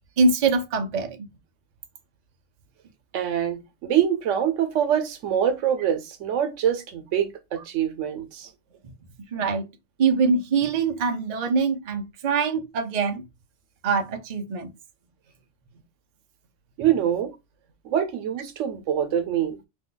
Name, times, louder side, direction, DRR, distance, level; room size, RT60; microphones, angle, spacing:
voice 1, 0.2-1.3 9.3-9.7 10.0-13.2 13.8-14.7, right 4 dB, 50° right, 0.5 m, -23 dB
voice 2, 3.1-8.5 16.8-17.3 17.8-19.6, right 9 dB, 90° right, 1.0 m, -25 dB
2.7 x 2.2 x 3.7 m
omnidirectional pair, 1.2 m